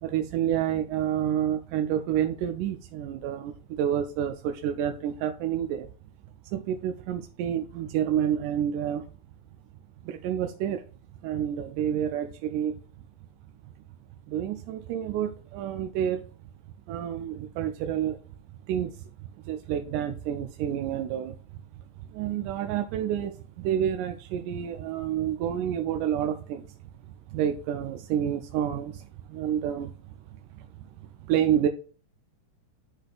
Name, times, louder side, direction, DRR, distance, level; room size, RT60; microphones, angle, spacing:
voice 1, 0.0-5.9 6.5-9.1 10.0-10.8 11.2-12.8 14.3-16.2 16.9-18.2 18.7-21.6 22.1-26.7 27.3-29.9 30.5-30.9 31.2-31.7, right 10 dB, 90° right, 6 dB, 2.1 m, -29 dB
11.5 x 3.9 x 2.5 m, 0.39 s
omnidirectional pair, 3.5 m